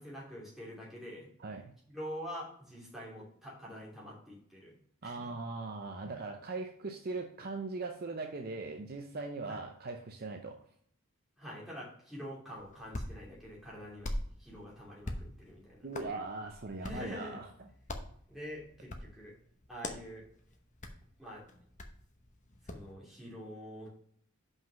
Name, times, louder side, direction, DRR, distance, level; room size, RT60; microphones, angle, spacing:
voice 1, 0.0-1.3 1.9-4.7 5.0-5.3 6.0-6.1 9.4-9.6 11.4-16.1 16.8-17.4 18.3-19.3 19.7-20.2 21.2-21.4 22.6-23.9, equal, ahead, -6 dB, 2.9 m, -46 dB
voice 2, 1.4-1.7 5.0-10.6 15.8-17.5, right 3 dB, 45° right, 4 dB, 0.6 m, -40 dB
Hands, 12.5-22.9, left 1 dB, 35° left, 0.9 m, -45 dB
5.7 x 5.4 x 5.7 m, 0.62 s
head